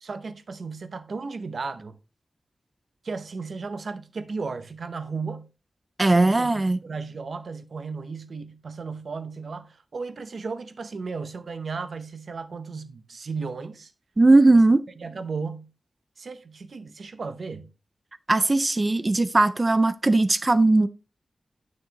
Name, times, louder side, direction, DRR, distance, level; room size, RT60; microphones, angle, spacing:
voice 1, 0.0-2.0 3.0-5.5 6.0-13.9 15.0-15.7 16.2-17.7, right 4 dB, 60° right, 0.8 m, -35 dB
voice 2, 6.0-6.8 14.2-14.8 18.3-20.9, right 2 dB, 25° right, 0.4 m, -18 dB
9.3 x 6.4 x 2.9 m
wide cardioid pair, 130°, 0 cm